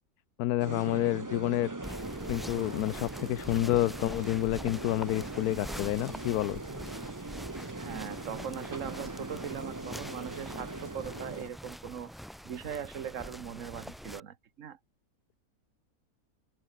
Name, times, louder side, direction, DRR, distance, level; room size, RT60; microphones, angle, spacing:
voice 1, 0.4-1.7 2.3-6.6, left 15 dB, 85° left, 1.1 m, -29 dB
sound 1, 0.6-11.5, right 2 dB, 15° right, 0.8 m, -41 dB
sound 2, 1.8-14.2, equal, ahead, 7.4 m, -44 dB
voice 2, 7.7-12.1 12.4-14.8, right 8 dB, 60° right, 1.4 m, -40 dB
omnidirectional pair, 1.6 m